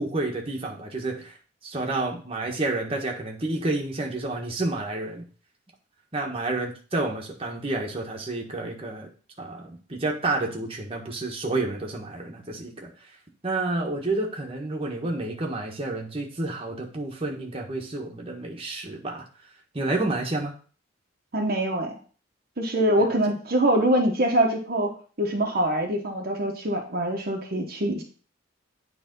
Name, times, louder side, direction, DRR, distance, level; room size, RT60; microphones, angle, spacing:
voice 1, 0.0-1.4 1.6-5.3 6.1-9.1 9.4-12.9 13.4-19.2 19.7-20.5, right 2 dB, 30° right, 0 dB, 1.3 m, -30 dB
voice 2, 21.3-21.9 22.6-28.0, right 1 dB, 50° right, 0 dB, 1.1 m, -24 dB
9.0 x 3.5 x 5.3 m, 0.40 s
head